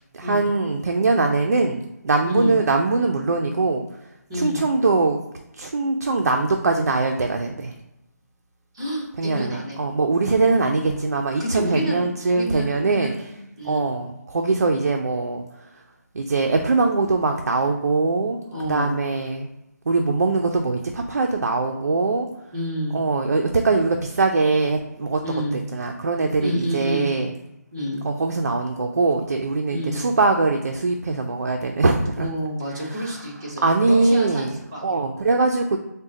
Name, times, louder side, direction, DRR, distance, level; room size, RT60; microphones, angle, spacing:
voice 1, 0.1-3.8 4.3-5.2 5.6-7.7 9.2-13.1 13.6-15.4 16.1-18.4 18.7-19.5 19.9-22.3 22.9-27.3 28.0-32.3 32.8-33.2 33.6-34.6 34.8-35.8, right 3 dB, 60° right, 4 dB, 0.4 m, -22 dB
voice 2, 4.3-4.6 8.7-9.8 10.4-11.0 11.4-13.8 18.4-19.0 22.5-23.0 25.2-25.6 26.4-27.1 27.7-28.0 29.7-30.0 32.2-35.3, equal, 15° right, -6 dB, 0.8 m, -29 dB
3.9 x 2.1 x 3.7 m, 0.91 s
hypercardioid pair, 175°, 9 cm